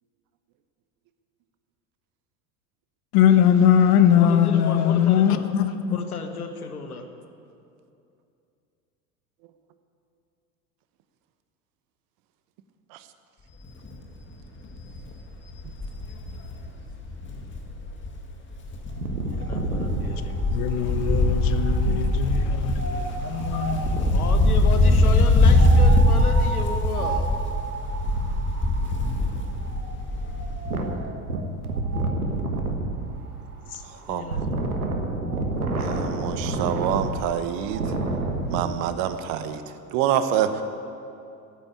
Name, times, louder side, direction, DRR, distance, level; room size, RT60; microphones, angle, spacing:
voice 1, 3.1-6.0 20.5-24.2, left 9 dB, 50° left, 1.1 m, -21 dB
voice 2, 4.2-5.5 5.9-7.0 19.3-20.4 24.1-27.3 33.7-35.0, left 4 dB, 85° left, 1.4 m, -33 dB
Wind, 13.6-13.9 14.3-14.4 14.7-18.2 18.5-30.7 31.0-31.1, left 1 dB, 25° left, 2.0 m, -22 dB
Wind 2, 18.9-24.3 25.4-38.6, right 2 dB, 90° right, 1.5 m, -30 dB
voice 3, 35.8-37.8 38.5-39.6 39.9-40.6, right 10 dB, 50° right, 1.1 m, -26 dB
13.5 x 9.1 x 8.7 m
hypercardioid pair, 80°, 43 cm